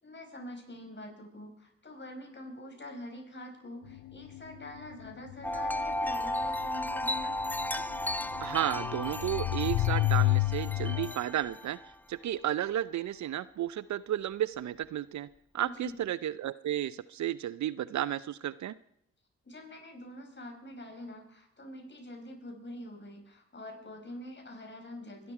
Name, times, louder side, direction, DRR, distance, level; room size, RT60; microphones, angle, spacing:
voice 1, 0.0-7.4 15.6-15.9 19.4-25.3, left 1 dB, 35° left, 3 dB, 5.5 m, -45 dB
sound 1, 3.9-11.1, left 19 dB, 70° left, 0.6 m, -30 dB
Wind chime, 5.4-11.9, left 1 dB, 5° left, 1.1 m, -35 dB
voice 2, 8.4-11.8 12.1-15.3 15.5-18.7, right 12 dB, 65° right, 18 dB, 0.6 m, -33 dB
23.5 x 11.5 x 4.8 m, 0.74 s
supercardioid pair, 50°, 31 cm